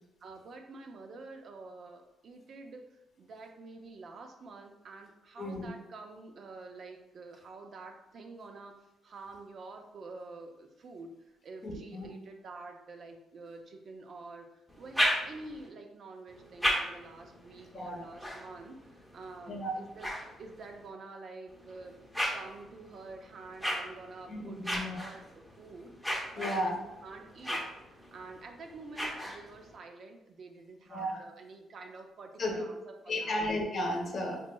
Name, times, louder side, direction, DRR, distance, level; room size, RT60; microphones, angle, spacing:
voice 1, 0.2-8.7 9.0-11.2 11.4-20.1 20.4-21.9 22.3-33.4, right 3 dB, 55° right, 4 dB, 0.5 m, -48 dB
voice 2, 5.4-5.7 11.6-12.1 17.7-18.0 19.5-19.7 24.3-25.0 26.4-26.8 30.9-31.2 32.4-32.6 33.1-34.4, left 1 dB, 50° left, 1 dB, 0.8 m, -34 dB
sound 1, 14.7-15.7 16.3-20.9 21.5-29.8, equal, ahead, 0.8 m, -37 dB
4.1 x 3.0 x 2.2 m, 0.94 s
cardioid pair, 90°, 0 cm